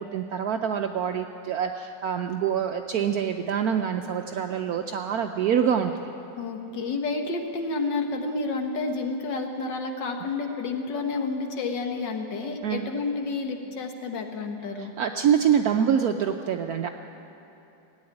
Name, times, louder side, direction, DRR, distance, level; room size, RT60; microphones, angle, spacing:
voice 1, 0.0-5.9 12.6-12.8 14.8-16.9, right 8 dB, 75° right, 5 dB, 0.9 m, -25 dB
voice 2, 6.4-14.9, left 3 dB, 65° left, 4 dB, 1.9 m, -30 dB
16.5 x 8.7 x 9.6 m, 3.0 s
omnidirectional pair, 2.1 m